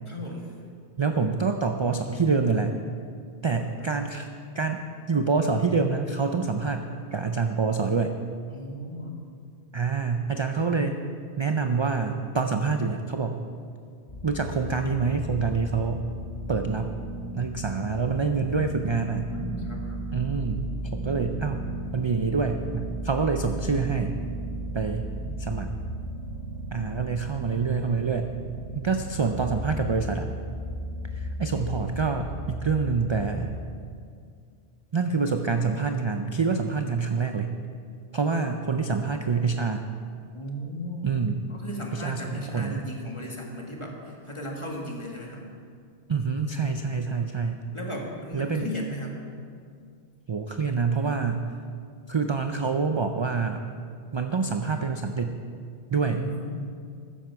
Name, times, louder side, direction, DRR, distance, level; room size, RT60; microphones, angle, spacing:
voice 1, 0.1-0.5 3.8-4.1 8.5-9.2 19.3-20.0 25.0-25.4 40.3-41.2 41.5-45.5 47.7-49.2 56.0-56.8, equal, 25° left, -1 dB, 1.7 m, -36 dB
voice 2, 1.0-2.7 3.4-4.2 4.5-4.8 5.1-8.2 9.7-11.0 11.4-13.4 14.2-16.0 16.5-16.9 17.3-19.3 20.1-24.2 24.7-25.1 25.4-25.7 26.7-28.3 28.7-30.3 31.1-33.6 34.9-37.5 38.1-39.8 41.0-41.4 41.9-42.8 46.1-47.6 48.3-48.7 50.3-51.5 52.1-53.6 54.1-55.4 55.9-56.3, right 4 dB, 45° right, 6 dB, 0.3 m, -26 dB
sound 1, 14.1-33.7, right 1 dB, 65° left, 3.6 m, -35 dB
14.0 x 10.0 x 4.7 m, 2.2 s
omnidirectional pair, 1.2 m